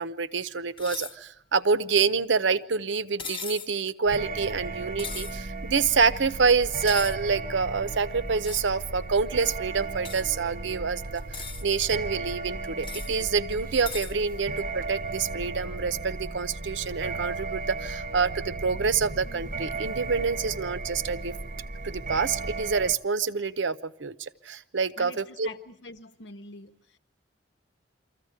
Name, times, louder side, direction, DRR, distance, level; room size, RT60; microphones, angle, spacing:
voice 1, 0.0-11.2 11.6-21.3 21.8-25.5, right 5 dB, 80° right, 14 dB, 0.8 m, -27 dB
sound 1, 0.8-1.2 3.2-3.7 5.0-5.4 6.8-7.2 8.4-8.7 10.0-10.2 11.2-11.6 12.8-13.1 13.9-14.1, left 4 dB, 30° left, 1.0 m, -38 dB
sound 2, 4.1-23.0, right 3 dB, 50° right, 0.8 m, -35 dB
voice 2, 25.0-27.0, left 3 dB, 70° left, 8 dB, 1.1 m, -45 dB
24.0 x 14.5 x 9.6 m, 0.83 s
head